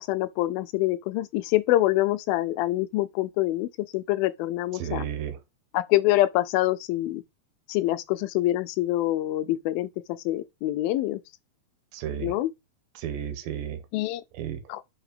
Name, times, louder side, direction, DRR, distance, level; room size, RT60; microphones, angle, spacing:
voice 1, 0.0-3.7 3.9-5.1 5.7-7.2 7.7-9.9 10.3-11.2 12.2-12.5 13.9-14.2 14.7-14.8, left 16 dB, 80° left, 2.2 m, -25 dB
voice 2, 4.8-5.4 11.9-12.3 13.0-13.8 14.4-14.6, right 9 dB, 75° right, 2.5 m, -33 dB
5.7 x 4.9 x 5.0 m
omnidirectional pair, 4.4 m